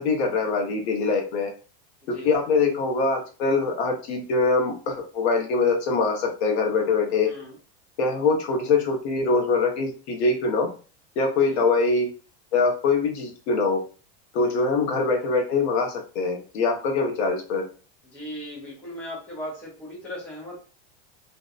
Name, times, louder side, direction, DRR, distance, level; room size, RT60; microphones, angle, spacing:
voice 1, 0.0-1.5 2.1-7.3 8.0-10.7 11.2-12.1 12.5-13.8 14.3-17.6, left 4 dB, 80° left, 2 dB, 0.8 m, -23 dB
voice 2, 7.2-7.6 11.4-11.6 14.4-14.7 18.0-20.6, equal, 5° left, -5 dB, 0.4 m, -38 dB
2.6 x 2.1 x 2.3 m, 0.36 s
supercardioid pair, 175°, 32 cm